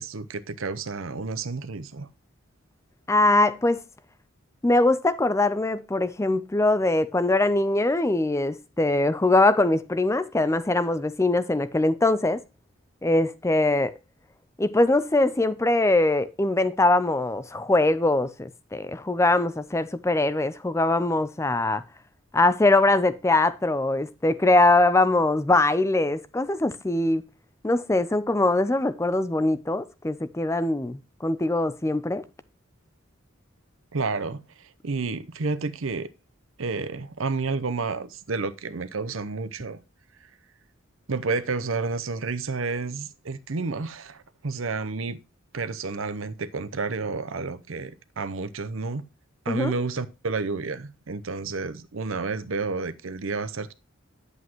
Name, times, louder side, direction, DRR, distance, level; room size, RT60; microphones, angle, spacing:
voice 1, 0.0-2.1 33.9-36.1 36.6-39.8 41.1-45.2 45.5-49.1 49.4-53.7, right 4 dB, 75° right, 0.7 m, -30 dB
voice 2, 3.1-3.8 4.6-12.4 13.0-13.9 14.6-21.8 22.3-27.2 27.6-32.2 49.5-49.7, left 2 dB, 15° left, 0.5 m, -22 dB
9.5 x 8.2 x 3.0 m
head